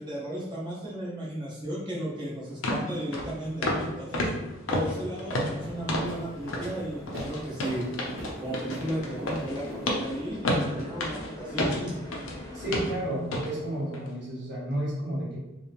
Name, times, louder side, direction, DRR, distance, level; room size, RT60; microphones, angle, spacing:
voice 1, 0.0-4.3 4.7-7.8 8.4-12.0, right 1 dB, 25° right, -6 dB, 0.7 m, -34 dB
sound 1, 2.0-2.1 2.6-2.9 3.1-3.3 3.6-3.9 4.1-6.2 6.5-6.7 7.1-12.4 12.7-12.9 13.3-13.5 13.9-14.1, left 1 dB, 85° left, 0.5 m, -30 dB
sound 2, 4.8-12.9, left 1 dB, 15° left, 0.3 m, -43 dB
sound 3, 5.5-10.3, equal, 85° right, 0.6 m, -44 dB
voice 2, 12.5-15.4, right 1 dB, 55° right, -6 dB, 0.9 m, -31 dB
2.9 x 2.1 x 2.5 m, 0.98 s
head